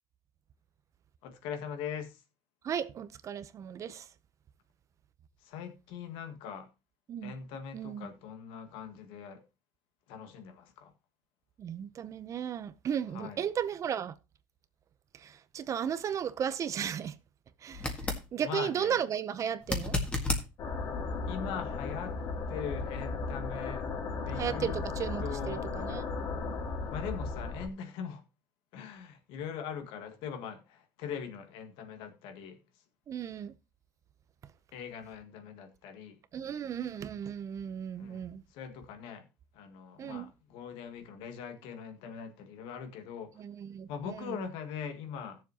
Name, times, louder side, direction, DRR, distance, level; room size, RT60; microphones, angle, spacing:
voice 1, 1.2-2.2 5.4-6.7 7.2-9.4 10.1-10.9 13.1-13.4 18.4-19.0 21.3-22.2 22.5-23.9 24.2-24.8 25.2-25.7 26.9-28.2 28.7-32.6 34.7-36.2 38.0-38.3 38.5-39.3 39.5-43.4 43.9-45.4, left 7 dB, 75° left, 1.8 m, -41 dB
voice 2, 2.6-4.1 7.1-7.3 7.7-8.1 11.6-14.1 15.1-17.2 17.6-17.9 18.3-20.0 24.4-26.0 26.3-26.6 33.1-33.5 36.3-38.4 40.0-40.2 43.4-44.4, right 8 dB, 35° right, 0.7 m, -35 dB
sound 1, 17.7-18.3 19.6-20.5 23.5-23.6, left 2 dB, 10° left, 1.8 m, -31 dB
sound 2, 20.6-27.7, left 4 dB, 45° left, 2.2 m, -36 dB
17.0 x 7.2 x 2.9 m
cardioid pair, 135°, 9 cm